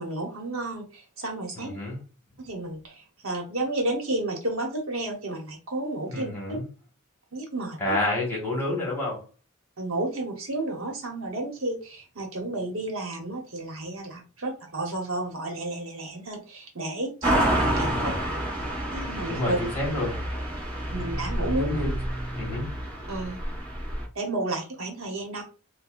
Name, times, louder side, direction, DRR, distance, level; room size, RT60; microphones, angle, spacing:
voice 1, 0.0-1.8 2.4-6.6 7.3-8.0 9.8-17.9 18.9-19.6 20.9-21.6 23.1-23.4 24.1-25.4, right 2 dB, 75° right, 2 dB, 1.1 m, -32 dB
voice 2, 1.6-2.0 6.1-6.6 7.8-9.2 17.8-18.2 19.3-20.2 21.4-21.9 22.3-22.6, left 1 dB, 10° left, -4 dB, 1.5 m, -29 dB
sound 1, 17.2-24.1, right 1 dB, 25° right, 1.5 m, -28 dB
5.3 x 2.2 x 2.5 m, 0.34 s
head